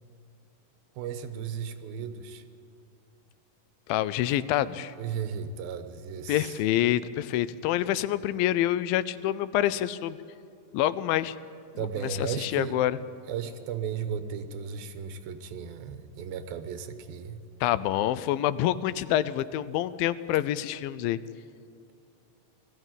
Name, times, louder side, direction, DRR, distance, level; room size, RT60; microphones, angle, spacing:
voice 1, 1.0-2.4 5.0-6.6 11.8-12.8 13.3-17.4, right 7 dB, 90° right, 9 dB, 2.9 m, -35 dB
voice 2, 3.9-4.9 6.3-10.2 10.7-11.4 11.8-11.9 12.2-13.0 17.6-21.2, left 13 dB, 85° left, 15 dB, 2.4 m, -27 dB
20.0 x 14.5 x 9.0 m, 2.5 s
omnidirectional pair, 4.1 m